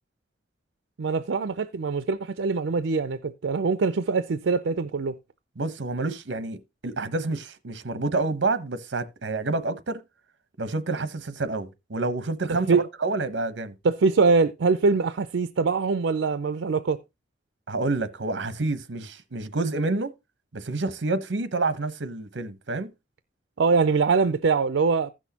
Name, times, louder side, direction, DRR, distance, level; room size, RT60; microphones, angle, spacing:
voice 1, 1.0-5.1 12.5-12.8 13.8-17.0 23.6-25.1, right 4 dB, 90° right, 0.5 m, -23 dB
voice 2, 5.6-10.0 10.6-13.7 17.7-20.1 20.5-22.9, right 3 dB, 70° right, 0.9 m, -28 dB
15.0 x 6.2 x 2.8 m
head